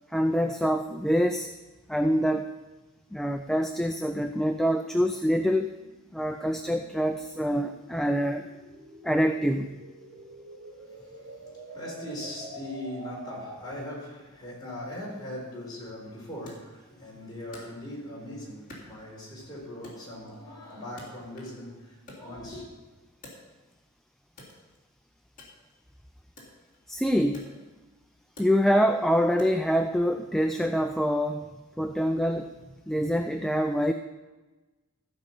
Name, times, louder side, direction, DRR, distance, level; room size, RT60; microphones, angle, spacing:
voice 1, 0.1-1.5 1.9-2.5 3.1-5.7 6.1-8.5 9.0-9.8 26.9-27.5 28.4-31.5 31.8-32.6 32.9-33.9, equal, ahead, 0.3 m, -25 dB
sound 1, 2.8-14.0, right 1 dB, 50° right, 2.7 m, -47 dB
voice 2, 10.8-11.3 11.7-22.7, left 1 dB, 20° left, 3.9 m, -40 dB
Wood, 16.5-18.2 18.7-19.4 19.8-21.7 21.9-23.9 24.3-29.8, left 1 dB, 40° left, 3.1 m, -51 dB
15.0 x 5.3 x 7.0 m
head